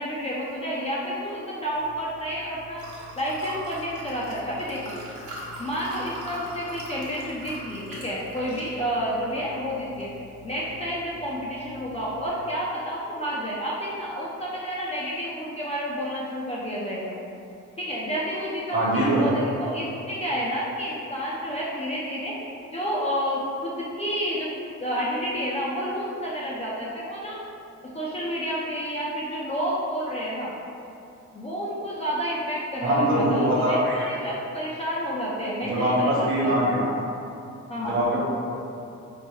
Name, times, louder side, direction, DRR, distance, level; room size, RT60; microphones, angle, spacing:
voice 1, 0.0-2.8 3.2-4.9 5.6-10.1 10.4-17.1 17.8-22.4 22.7-24.5 24.8-27.4 27.9-30.5 31.3-36.5 37.7-38.0, equal, 20° left, -6 dB, 0.4 m, -30 dB
Liquid, 1.7-12.3, equal, 70° right, 0.9 m, -42 dB
voice 2, 18.7-19.3 32.8-34.1 35.6-36.9 37.8-38.2, right 1 dB, 40° right, -6 dB, 1.1 m, -22 dB
4.5 x 2.1 x 3.0 m, 2.7 s
cardioid pair, 125°, 31 cm